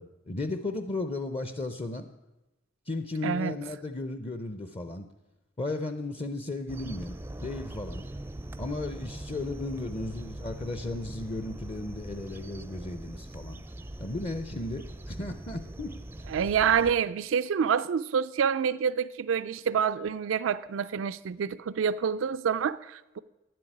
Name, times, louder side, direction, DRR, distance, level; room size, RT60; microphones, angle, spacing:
voice 1, 0.0-2.0 2.9-5.1 5.6-8.1 8.6-13.6 14.0-15.9, left 2 dB, 30° left, 9 dB, 0.6 m, -35 dB
voice 2, 3.2-3.5 16.3-23.2, right 7 dB, 90° right, 15 dB, 0.4 m, -27 dB
sound 1, 6.7-16.9, right 1 dB, 10° right, 0.4 m, -41 dB
10.5 x 7.7 x 9.2 m, 1.0 s
head